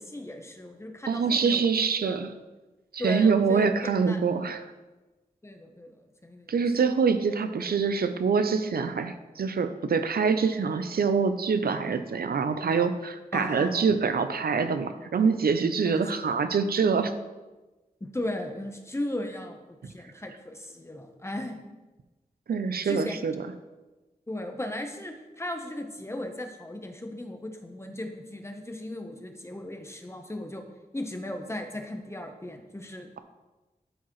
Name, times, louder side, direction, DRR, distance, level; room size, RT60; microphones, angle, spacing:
voice 1, 0.0-1.7 2.0-2.2 3.0-3.6 4.1-4.2 5.4-6.5 13.3-13.9 15.8-16.0 18.0-21.6 22.8-23.2 24.3-30.6 30.9-33.1, left 1 dB, 15° left, 4 dB, 0.9 m, -36 dB
voice 2, 1.1-2.3 2.9-4.7 6.5-17.1 22.5-23.4, right 5 dB, 85° right, 10 dB, 0.5 m, -25 dB
12.0 x 4.6 x 3.1 m, 1.1 s
wide cardioid pair, 85°, 15 cm